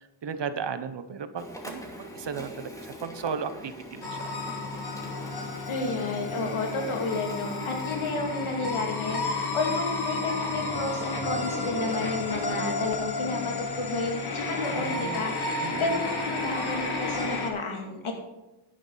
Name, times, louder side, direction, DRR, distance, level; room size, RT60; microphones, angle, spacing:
voice 1, 0.2-2.7 3.0-4.3 8.1-8.2 14.7-15.3 15.6-16.0, right 6 dB, 55° right, 11 dB, 1.1 m, -35 dB
Printer, 1.4-12.6, left 1 dB, 5° left, 2.6 m, -45 dB
sound 1, 4.0-17.5, left 2 dB, 50° left, 2.2 m, -32 dB
voice 2, 5.7-18.1, left 3 dB, 75° left, 2 dB, 2.5 m, -31 dB
11.5 x 9.2 x 4.0 m, 0.97 s
cardioid pair, 55°, 49 cm